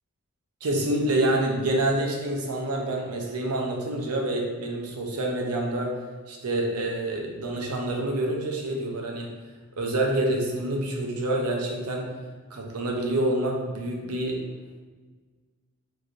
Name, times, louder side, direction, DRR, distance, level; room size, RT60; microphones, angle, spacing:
voice 1, 0.6-5.9 6.3-9.3 9.8-12.1 12.5-14.4, right 1 dB, 85° right, 1 dB, 0.5 m, -27 dB
3.1 x 2.6 x 2.4 m, 1.4 s
head